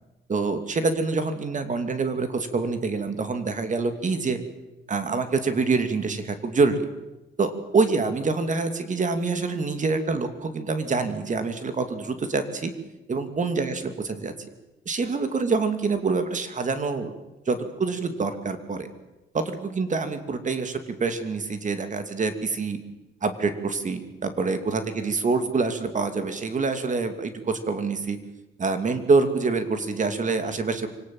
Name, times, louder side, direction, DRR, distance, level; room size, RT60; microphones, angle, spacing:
voice 1, 0.3-4.4 4.9-6.9 7.4-12.7 13.1-14.3 14.9-17.1 17.5-18.9 19.3-22.8 23.2-28.2 28.6-30.9, right 4 dB, 40° right, 9 dB, 2.6 m, -26 dB
25.0 x 18.0 x 7.8 m, 1.0 s
cardioid pair, 90°, 20 cm